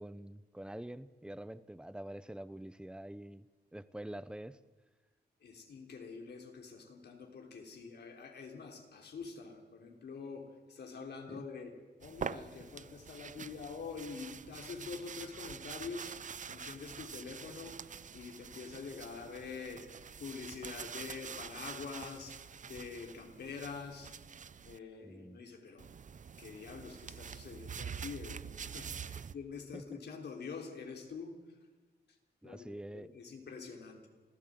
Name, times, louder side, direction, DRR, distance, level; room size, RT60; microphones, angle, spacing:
voice 1, 0.0-3.5 3.7-4.6 11.3-11.5 25.0-25.4 29.7-30.0 32.4-33.1, right 1 dB, 5° right, 15 dB, 0.8 m, -46 dB
voice 2, 5.4-16.2 16.5-17.8 18.1-19.9 20.2-24.1 24.6-25.9 26.4-31.6 32.1-32.2 32.4-32.7 32.9-34.1, left 5 dB, 80° left, 2 dB, 3.5 m, -46 dB
sound 1, 12.0-24.8 25.8-29.3, right 7 dB, 50° right, 0.6 m, -46 dB
27.0 x 15.5 x 7.8 m, 1.3 s
cardioid pair, 90°, 17 cm